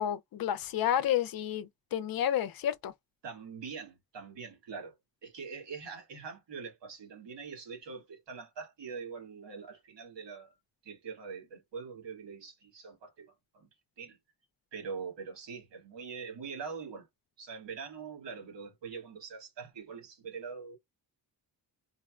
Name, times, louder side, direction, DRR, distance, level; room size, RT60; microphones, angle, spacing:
voice 1, 0.0-2.9, left 10 dB, 55° left, 0.6 m, -30 dB
voice 2, 3.2-5.0 5.2-10.5 10.8-13.7 14.0-14.2 14.7-17.1 17.4-20.8, right 5 dB, 85° right, 2.1 m, -43 dB
4.0 x 2.1 x 2.4 m
wide cardioid pair, 145°, 42 cm